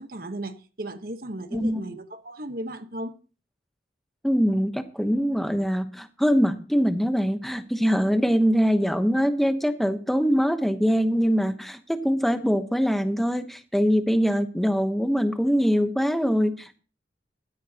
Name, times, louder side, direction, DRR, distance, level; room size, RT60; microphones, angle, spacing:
voice 1, 0.0-3.1, right 1 dB, 50° right, 1.1 m, -35 dB
voice 2, 4.2-16.8, equal, ahead, 0.9 m, -23 dB
16.0 x 13.0 x 2.9 m
head